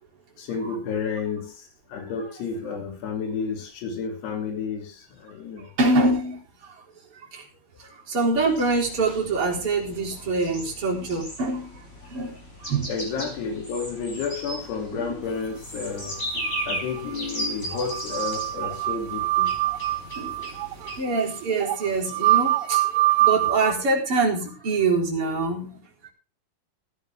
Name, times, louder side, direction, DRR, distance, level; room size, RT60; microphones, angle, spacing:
voice 1, 0.4-5.7 7.8-7.9 12.9-16.2 16.7-19.5, left 5 dB, 80° left, 3 dB, 4.9 m, -31 dB
voice 2, 5.8-6.7 7.3-7.4 7.9-11.8 12.1-12.9 14.9-15.3 20.1-20.5 21.0-25.9, right 3 dB, 35° right, -2 dB, 4.4 m, -25 dB
sound 1, 8.3-21.0, equal, 20° left, 5.8 m, -37 dB
sound 2, 16.1-17.2 17.4-17.5 17.7-23.7, right 16 dB, 80° right, 2.7 m, -24 dB
15.0 x 13.5 x 3.6 m, 0.34 s
omnidirectional pair, 4.7 m